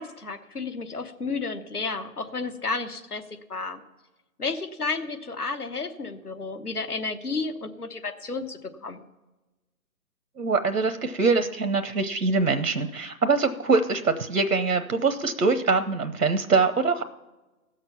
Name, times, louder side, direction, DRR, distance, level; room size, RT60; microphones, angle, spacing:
voice 1, 0.0-3.2 3.5-3.8 4.4-9.0, left 4 dB, 80° left, 7 dB, 1.2 m, -32 dB
voice 2, 10.4-17.0, right 4 dB, 90° right, 9 dB, 0.8 m, -23 dB
16.0 x 6.6 x 5.6 m, 1.1 s
figure-of-eight pair, 140°, 45 cm